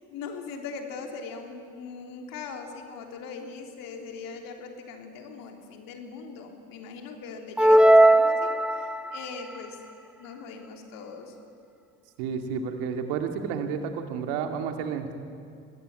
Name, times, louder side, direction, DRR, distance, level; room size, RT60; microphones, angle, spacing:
voice 1, 0.1-9.8 10.2-11.4, left 5 dB, 70° left, 4 dB, 3.5 m, -40 dB
sound 1, 7.6-9.2, right 1 dB, 5° right, 0.9 m, -18 dB
voice 2, 12.2-15.1, right 6 dB, 75° right, 6 dB, 2.3 m, -31 dB
25.0 x 20.0 x 9.6 m, 2.4 s
hypercardioid pair, 55°, 36 cm